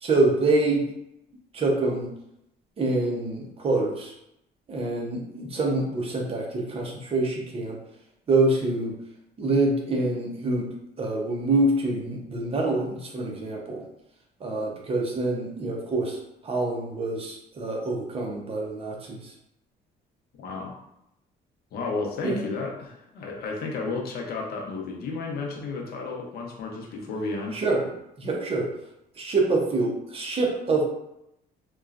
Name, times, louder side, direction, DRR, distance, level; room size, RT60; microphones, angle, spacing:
voice 1, 0.0-0.8 1.5-2.1 2.8-4.1 4.7-7.8 8.3-8.9 9.4-10.6 11.0-13.8 14.4-16.2 16.4-19.3 22.2-22.4 27.5-27.8 28.2-28.7 29.2-30.8, right 2 dB, 35° right, 0 dB, 0.7 m, -26 dB
voice 2, 20.4-20.8 21.7-27.6, left 3 dB, 70° left, 0 dB, 0.7 m, -32 dB
3.0 x 2.2 x 2.4 m, 0.82 s
cardioid pair, 110°, 17 cm